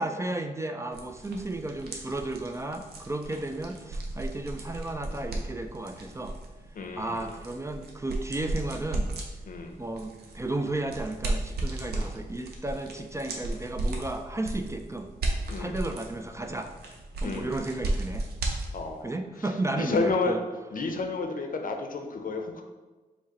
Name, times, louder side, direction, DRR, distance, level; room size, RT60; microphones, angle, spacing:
voice 1, 0.0-6.4 6.9-9.1 9.8-15.1 15.6-16.7 17.2-18.2 19.0-20.4, right 2 dB, 20° right, 6 dB, 0.3 m, -33 dB
sound 1, 0.9-19.0, right 2 dB, 90° right, 0.6 m, -35 dB
voice 2, 6.7-7.4 9.5-9.8 15.5-15.7 17.2-17.5 18.7-19.5 19.8-20.4 20.7-22.6, left 3 dB, 60° left, 4 dB, 0.6 m, -31 dB
4.9 x 2.1 x 4.0 m, 1.2 s
cardioid pair, 55°, 16 cm